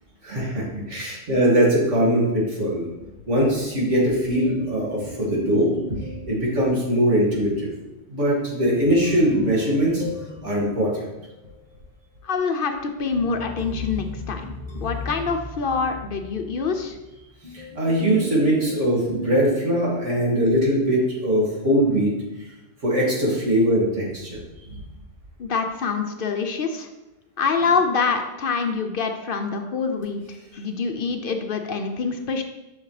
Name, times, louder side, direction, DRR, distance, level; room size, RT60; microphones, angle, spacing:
voice 1, 0.2-2.8 3.3-6.0 6.3-7.7 8.1-10.0 10.4-11.1 17.5-22.1 22.4-22.5 22.8-24.8, equal, 90° right, -4 dB, 2.5 m, -21 dB
sound 1, 4.4-7.0 8.6-11.6 13.0-20.4, equal, 30° left, 1.0 m, -36 dB
voice 2, 12.2-17.0 25.4-26.9 27.4-30.2 30.5-32.4, left 5 dB, 60° left, 6 dB, 0.7 m, -25 dB
7.1 x 6.5 x 3.2 m, 1.0 s
omnidirectional pair, 1.2 m